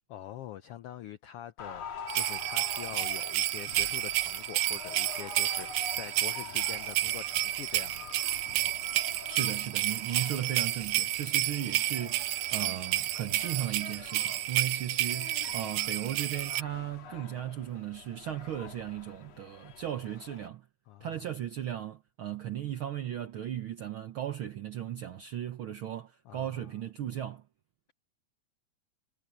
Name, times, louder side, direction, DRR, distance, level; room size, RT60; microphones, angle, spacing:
voice 1, 0.1-8.1 20.9-21.1 26.3-26.7, left 11 dB, 80° left, 1.3 m, -45 dB
sound 1, 1.6-20.5, left 5 dB, 60° left, 2.9 m, -46 dB
sound 2, 2.1-16.6, right 15 dB, 90° right, 2.2 m, -31 dB
voice 2, 9.3-20.7 21.0-27.5, right 11 dB, 70° right, 1.2 m, -36 dB
omnidirectional pair, 3.5 m